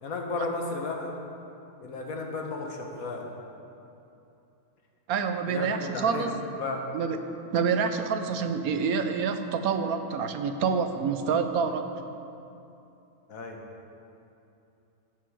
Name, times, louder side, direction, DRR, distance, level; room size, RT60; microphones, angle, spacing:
voice 1, 0.0-1.1 1.8-3.3 5.5-6.3 6.6-6.8 13.3-13.6, left 3 dB, 70° left, 1 dB, 1.6 m, -33 dB
voice 2, 5.1-6.3 6.9-7.2 7.5-11.8, right 6 dB, 80° right, 8 dB, 1.2 m, -27 dB
15.5 x 7.7 x 4.8 m, 2.8 s
omnidirectional pair, 1.5 m